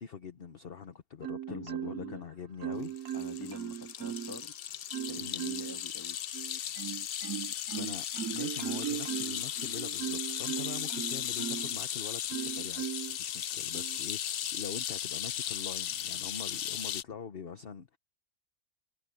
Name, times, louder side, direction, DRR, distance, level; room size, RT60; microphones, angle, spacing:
voice 1, 0.0-2.9 5.2-5.4 7.5-18.0, left 6 dB, 45° left, 1.1 m, -44 dB
Marimba xylophone, 1.2-2.2 2.6-4.4 4.9-5.8 6.3-11.8 12.3-13.2 13.7-14.0, right 11 dB, 75° right, 1.1 m, -38 dB
voice 2, 1.5-2.2 2.6-4.5 5.1-6.2, left 2 dB, 15° left, 1.9 m, -45 dB
sound 1, 2.8-17.0, left 10 dB, 65° left, 0.6 m, -36 dB
omnidirectional pair, 1.6 m